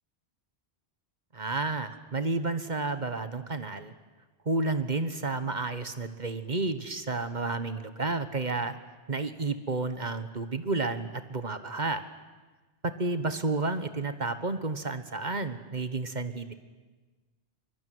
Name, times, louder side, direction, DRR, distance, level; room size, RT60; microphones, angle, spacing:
voice 1, 1.3-3.9 4.4-8.8 9.1-12.0 12.8-16.5, right 3 dB, 45° right, 11 dB, 1.4 m, -31 dB
24.0 x 22.5 x 9.4 m, 1.3 s
omnidirectional pair, 1.1 m